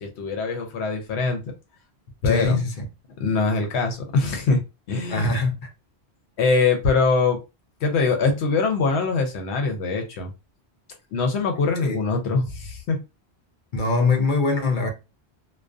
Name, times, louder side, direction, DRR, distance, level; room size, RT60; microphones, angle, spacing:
voice 1, 0.0-1.4 2.2-2.6 3.2-4.6 4.9-5.3 6.4-7.4 7.8-10.3 11.1-13.0, left 4 dB, 80° left, 0.9 m, -23 dB
voice 2, 2.2-2.7 5.1-5.7 11.8-12.0 13.7-14.9, left 3 dB, 55° left, 0.7 m, -22 dB
2.4 x 2.2 x 2.4 m
omnidirectional pair, 1.1 m